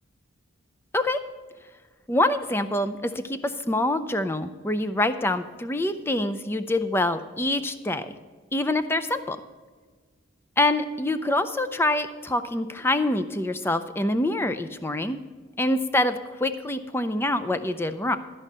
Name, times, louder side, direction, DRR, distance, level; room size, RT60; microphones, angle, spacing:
voice 1, 2.1-8.1 8.5-9.4 10.6-15.2 15.6-18.2, left 1 dB, 10° left, 11 dB, 0.4 m, -25 dB
12.5 x 5.5 x 7.3 m, 1.4 s
head